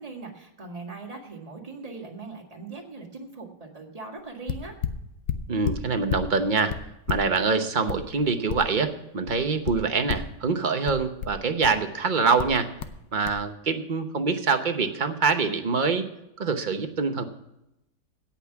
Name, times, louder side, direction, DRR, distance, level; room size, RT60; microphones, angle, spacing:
voice 1, 0.0-4.8, right 3 dB, 20° right, 1 dB, 1.8 m, -40 dB
sound 1, 4.2-4.3 4.5-6.3 6.7-8.9 9.3-10.4 10.9-11.8 12.4-13.0 13.2-13.4, left 8 dB, 85° left, 1.5 m, -32 dB
voice 2, 5.5-6.8 7.1-12.7 13.1-16.0 16.4-17.2, right 4 dB, 40° right, 7 dB, 0.7 m, -25 dB
17.0 x 5.9 x 5.8 m, 0.86 s
omnidirectional pair, 1.9 m